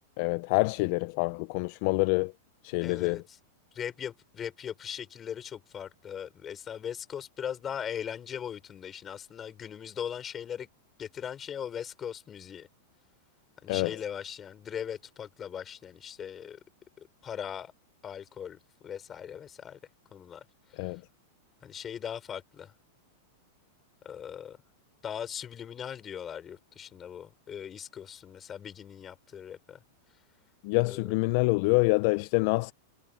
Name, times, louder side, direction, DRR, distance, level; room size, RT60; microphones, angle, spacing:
voice 1, 0.2-2.3 2.6-3.2 13.7-14.0 20.8-21.0 30.6-32.7, left 25 dB, 50° left, 0.5 m, -26 dB
voice 2, 2.8-3.4 3.7-10.7 11.0-12.7 13.6-16.6 17.0-17.7 18.0-19.8 20.1-21.0 21.6-22.7 24.0-24.6 25.0-29.8 30.8-31.1, left 8 dB, 20° left, 6.0 m, -39 dB
supercardioid pair, 150°, 0 cm